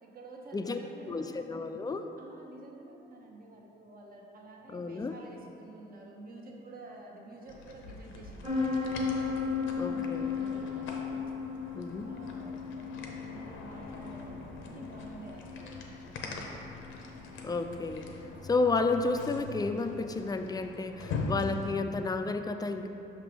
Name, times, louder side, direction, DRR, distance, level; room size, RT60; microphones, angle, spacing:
voice 1, 0.0-1.6 2.2-11.0 11.7-16.0, right 2 dB, 45° right, -1 dB, 1.0 m, -50 dB
voice 2, 1.1-2.1 4.7-5.2 9.8-10.3 11.8-12.1 17.4-18.1 18.4-22.9, left 3 dB, 20° left, 7 dB, 0.3 m, -31 dB
sound 1, 7.5-21.7, left 3 dB, 85° left, 0.7 m, -42 dB
sound 2, 8.4-19.9, left 5 dB, 25° right, 1.3 m, -36 dB
5.8 x 3.5 x 5.1 m, 2.8 s
cardioid pair, 90°, 20 cm